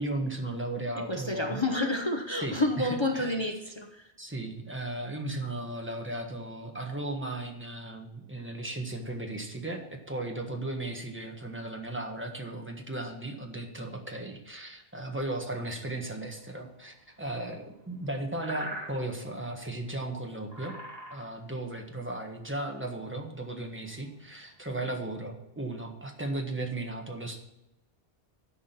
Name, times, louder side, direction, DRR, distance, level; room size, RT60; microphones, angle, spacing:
voice 1, 0.0-1.6 2.4-3.4 4.2-20.7 21.1-27.4, right 2 dB, 10° right, 2 dB, 1.4 m, -36 dB
voice 2, 1.0-4.1, left 2 dB, 30° left, 4 dB, 0.8 m, -29 dB
sound 1, 15.6-24.8, right 1 dB, 35° right, 2.5 m, -47 dB
12.5 x 5.0 x 5.9 m, 0.88 s
omnidirectional pair, 1.1 m